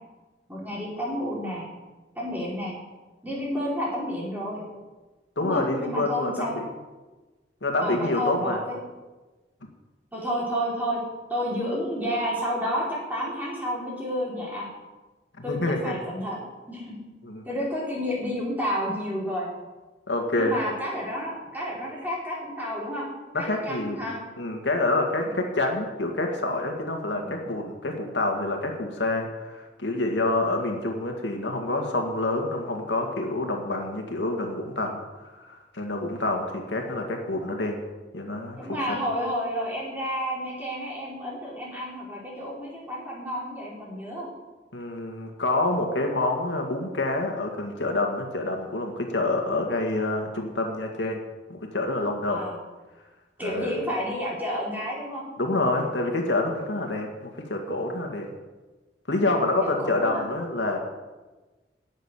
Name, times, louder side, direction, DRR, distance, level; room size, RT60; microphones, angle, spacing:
voice 1, 0.5-1.6 2.1-2.7 3.2-4.6 5.4-6.6 7.8-8.8 10.1-11.0 11.3-14.6 15.4-16.4 16.7-16.9 17.4-19.5 20.3-23.0 23.3-24.2 25.3-25.4 27.1-27.4 38.6-44.3 52.3-52.6 53.4-55.2 59.6-60.2, equal, 10° right, -6 dB, 4.7 m, -30 dB
voice 2, 5.4-6.7 7.6-8.6 15.5-16.0 17.2-17.4 20.1-20.6 23.3-24.0 24.4-37.8 38.1-39.0 44.7-51.2 51.5-52.4 53.4-53.7 55.4-58.3 59.1-60.8, left 2 dB, 75° left, 2 dB, 2.1 m, -27 dB
11.5 x 7.4 x 10.0 m, 1.2 s
head